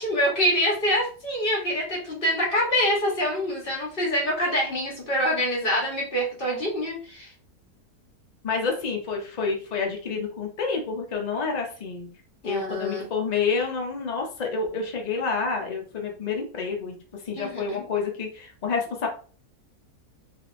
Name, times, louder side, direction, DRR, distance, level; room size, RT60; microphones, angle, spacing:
voice 1, 0.0-7.3 12.4-13.1 17.4-17.8, equal, 35° left, -3 dB, 1.4 m, -25 dB
voice 2, 8.4-12.1 12.4-19.1, left 5 dB, 90° left, 1 dB, 0.3 m, -29 dB
3.4 x 2.8 x 2.5 m, 0.40 s
omnidirectional pair, 1.7 m